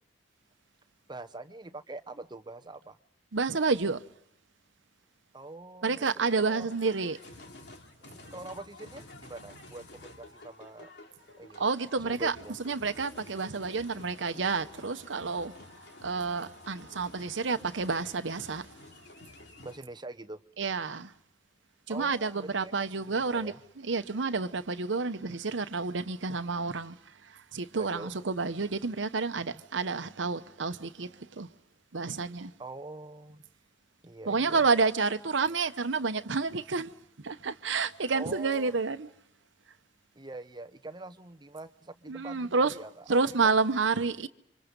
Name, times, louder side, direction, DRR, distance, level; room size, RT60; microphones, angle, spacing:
voice 1, 1.1-3.0 5.3-6.7 8.0-10.9 11.4-11.6 12.0-12.5 19.6-20.4 21.9-22.9 23.3-23.6 27.7-28.2 29.4-29.6 32.6-33.4 34.0-34.6 38.1-38.7 40.2-43.0 43.4-43.5, right 2 dB, 25° right, 0.9 m, -44 dB
voice 2, 3.3-4.0 5.8-7.2 11.6-12.3 12.6-15.6 16.0-18.7 20.6-21.1 21.9-23.5 23.8-31.5 31.9-32.5 34.3-36.9 37.2-39.1 42.1-42.7 43.1-44.3, right 4 dB, 85° right, 0.9 m, -29 dB
sound 1, 6.7-19.8, left 2 dB, 65° left, 2.8 m, -51 dB
29.5 x 26.0 x 5.3 m
head